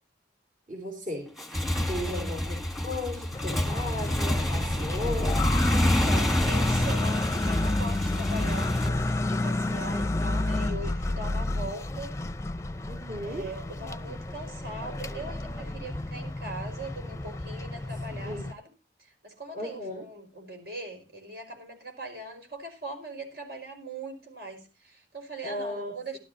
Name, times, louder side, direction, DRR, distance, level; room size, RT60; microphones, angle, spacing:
voice 1, 0.7-1.3 1.9-5.4 12.9-13.5 18.1-18.5 19.5-20.0 25.4-26.2, left 1 dB, 45° right, 3.3 m, -36 dB
Motorcycle / Engine, 1.3-8.9, left 1 dB, ahead, 1.4 m, -28 dB
voice 2, 2.0-2.4 5.8-12.1 13.2-18.7 19.0-26.2, right 2 dB, 65° right, 5.0 m, -41 dB
sound 1, 3.3-18.5, left 2 dB, 15° left, 0.6 m, -30 dB
16.0 x 12.5 x 2.8 m
head